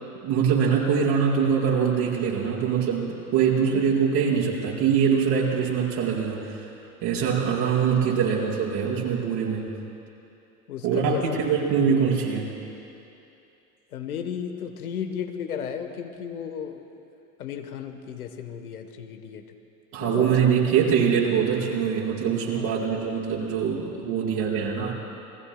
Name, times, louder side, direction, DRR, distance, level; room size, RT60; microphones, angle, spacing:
voice 1, 0.2-6.7 7.0-9.8 10.8-12.6 19.9-24.9, right 7 dB, 55° right, -4 dB, 4.8 m, -23 dB
voice 2, 10.7-11.4 13.9-16.9 17.4-19.5 20.0-20.3 22.5-23.1, left 8 dB, 85° left, 6 dB, 1.2 m, -34 dB
29.5 x 20.5 x 2.2 m, 2.7 s
hypercardioid pair, 85°, 43 cm